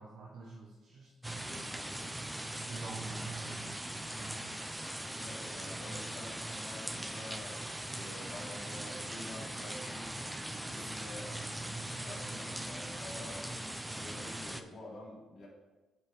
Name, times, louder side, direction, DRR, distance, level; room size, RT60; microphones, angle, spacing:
voice 1, 0.0-1.8 2.7-3.8 4.1-4.5, right 2 dB, 60° right, -2 dB, 1.3 m, -48 dB
sound 1, 1.2-14.6, right 1 dB, 5° right, 0.6 m, -40 dB
voice 2, 5.2-11.3 11.6-13.4 14.0-15.5, left 1 dB, 50° left, -4 dB, 2.9 m, -48 dB
7.9 x 5.8 x 5.2 m, 1.2 s
cardioid pair, 90°, 0 cm